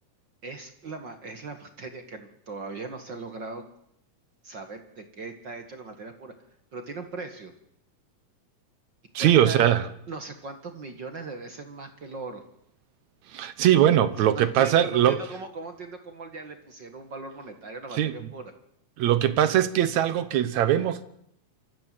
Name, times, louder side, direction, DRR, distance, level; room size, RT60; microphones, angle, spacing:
voice 1, 0.4-3.6 4.4-6.3 6.7-7.5 9.2-9.7 10.1-12.4 14.2-18.5, right 3 dB, 45° right, 1.8 m, -39 dB
voice 2, 9.2-9.8 13.3-15.2 18.0-18.1 19.0-21.0, right 11 dB, 70° right, 2.1 m, -21 dB
27.0 x 14.0 x 7.6 m
omnidirectional pair, 3.6 m